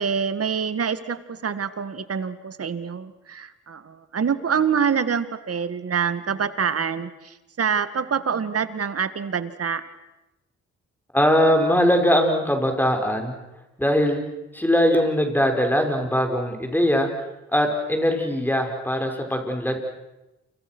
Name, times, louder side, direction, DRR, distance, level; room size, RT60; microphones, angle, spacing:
voice 1, 0.0-9.8, right 7 dB, 55° right, 13 dB, 2.0 m, -26 dB
voice 2, 11.1-13.3 13.8-14.2 14.5-17.1 17.5-19.8, equal, 5° left, 4 dB, 6.1 m, -21 dB
29.5 x 26.5 x 6.3 m, 0.98 s
cardioid pair, 60°, 29 cm